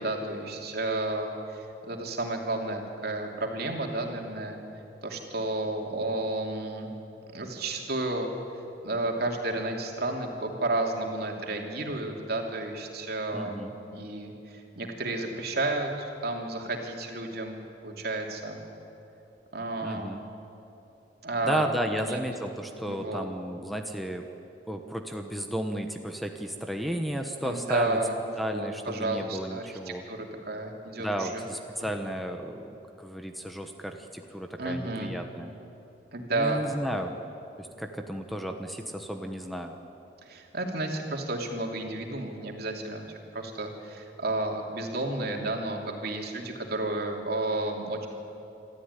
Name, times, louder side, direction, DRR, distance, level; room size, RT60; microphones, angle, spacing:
voice 1, 0.0-4.6 5.0-6.9 7.3-8.3 8.8-18.6 19.5-20.1 21.2-21.6 22.0-22.2 22.9-23.3 27.4-31.4 34.6-35.2 36.1-36.7 40.2-48.1, right 2 dB, 60° right, 1 dB, 3.0 m, -32 dB
voice 2, 13.3-13.7 19.8-20.2 21.4-24.2 24.7-28.0 28.4-30.0 31.0-35.5 36.3-37.2 37.6-39.8, equal, ahead, 5 dB, 1.0 m, -33 dB
26.5 x 13.5 x 9.8 m, 2.9 s
head